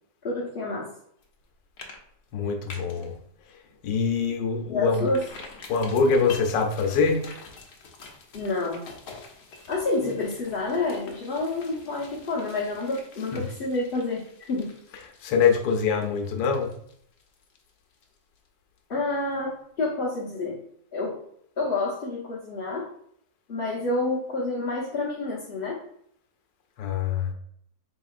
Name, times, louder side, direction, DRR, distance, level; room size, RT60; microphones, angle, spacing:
voice 1, 0.2-0.9 4.7-5.2 8.3-8.9 9.7-14.7 18.9-20.6 20.9-21.2 21.6-22.9 23.5-25.8, left 2 dB, 40° left, -10 dB, 1.0 m, -28 dB
sound 1, 1.2-1.5 1.8-2.0 2.3-3.1 3.5-3.6 4.0-4.1 4.9-18.5 18.8-18.9, left 4 dB, 70° left, 1.2 m, -46 dB
voice 2, 2.3-3.1 3.8-5.1 5.7-7.2 13.3-13.4 15.2-16.7 26.8-27.3, left 5 dB, 85° left, 4 dB, 1.3 m, -24 dB
4.2 x 3.6 x 2.4 m, 0.68 s
omnidirectional pair, 1.9 m